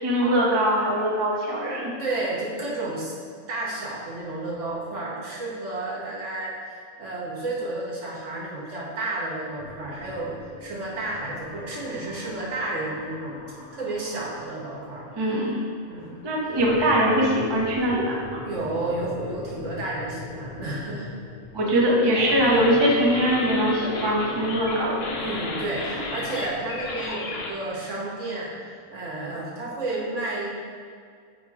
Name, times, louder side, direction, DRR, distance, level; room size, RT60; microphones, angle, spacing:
voice 1, 0.0-1.9 15.1-15.6 16.2-18.4 21.5-25.0, equal, 25° right, -3 dB, 0.7 m, -22 dB
voice 2, 2.0-3.1 3.5-13.4 13.7-15.3 15.9-16.6 18.4-21.1 25.2-30.5, right 2 dB, 55° right, -4 dB, 1.4 m, -32 dB
sound 1, 9.6-27.1, left 2 dB, 90° left, 1.3 m, -41 dB
sound 2, 22.1-27.5, left 2 dB, 55° left, 0.8 m, -33 dB
8.4 x 2.9 x 4.8 m, 2.1 s
omnidirectional pair, 1.5 m